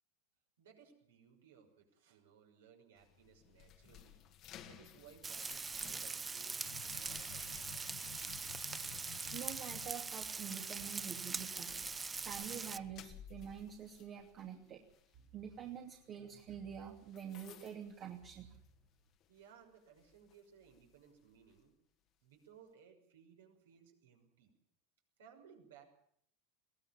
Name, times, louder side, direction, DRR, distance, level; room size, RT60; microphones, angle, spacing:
voice 1, 0.6-4.2 4.6-7.7 19.3-21.7 22.2-24.5 25.2-25.8, right 7 dB, 70° right, 3 dB, 6.1 m, -62 dB
sound 1, 3.0-18.9 19.2-19.5 20.0-21.6, left 9 dB, 45° left, 2.0 m, -60 dB
Frying (food), 5.2-12.8, right 4 dB, 20° right, 0.8 m, -42 dB
sound 2, 6.6-10.0, left 17 dB, 60° left, 0.8 m, -53 dB
voice 2, 9.3-11.7 12.2-14.8 15.3-18.6, right 8 dB, 40° right, 3 dB, 2.8 m, -47 dB
22.5 x 18.0 x 7.2 m, 0.67 s
figure-of-eight pair, 85°, 0 cm